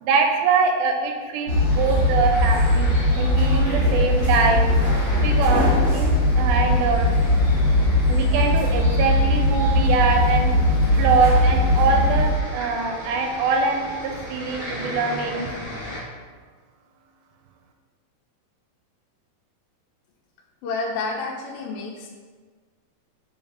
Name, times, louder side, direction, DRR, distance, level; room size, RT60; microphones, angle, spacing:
voice 1, 0.0-4.7 5.2-7.1 8.1-10.5 10.9-15.5, right 4 dB, 85° right, 3 dB, 2.5 m, -23 dB
sound 1, 1.5-12.3, left 1 dB, 45° left, 2.0 m, -19 dB
sound 2, 1.7-16.0, equal, 65° left, 0.7 m, -37 dB
voice 2, 20.6-22.1, left 3 dB, 80° left, -2 dB, 2.2 m, -29 dB
6.2 x 4.4 x 3.6 m, 1.5 s
omnidirectional pair, 4.3 m